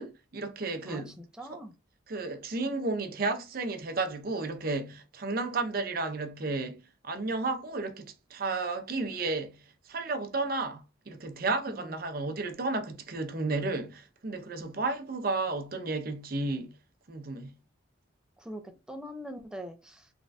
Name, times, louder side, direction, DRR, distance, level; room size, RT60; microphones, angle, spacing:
voice 1, 0.0-1.2 1.5-1.6 2.1-6.8 7.0-16.7 17.1-17.5, right 3 dB, 45° right, 0.6 m, -33 dB
voice 2, 0.9-1.7 11.7-11.9 14.6-14.8 18.4-20.1, equal, 5° right, 0.5 m, -43 dB
3.6 x 3.2 x 2.6 m
head